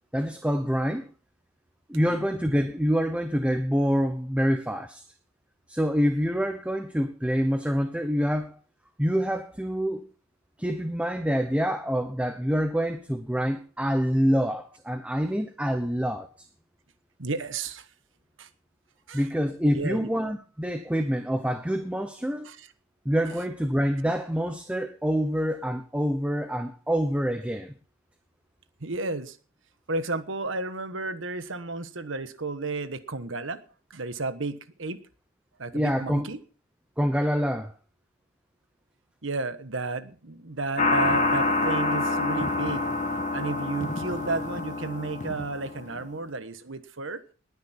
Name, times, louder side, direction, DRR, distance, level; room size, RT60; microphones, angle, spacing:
voice 1, 0.1-1.1 1.9-5.0 5.7-8.6 9.0-10.1 10.6-16.5 19.1-22.5 23.0-27.7 35.7-36.3 37.0-37.7, equal, 5° right, 0.9 m, -26 dB
voice 2, 1.9-2.3 17.2-17.9 18.4-18.5 19.1-19.2 19.7-20.1 22.4-22.7 28.8-29.4 29.9-33.6 33.9-35.0 35.6-36.4 39.2-42.9 43.3-47.2, right 3 dB, 65° right, 1.3 m, -32 dB
sound 1, 40.8-46.0, left 2 dB, 40° left, 1.3 m, -27 dB
19.5 x 9.6 x 4.4 m
head